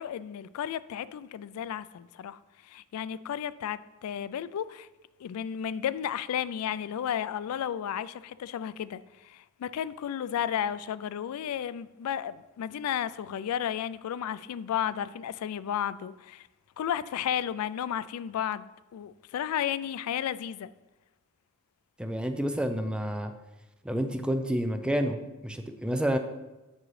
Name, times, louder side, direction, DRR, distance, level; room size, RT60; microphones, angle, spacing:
voice 1, 0.0-4.9 5.2-16.5 16.8-20.7, left 9 dB, 90° left, 0.3 m, -33 dB
voice 2, 22.0-23.3 23.8-26.2, equal, 5° right, 0.4 m, -29 dB
7.4 x 6.2 x 3.2 m
head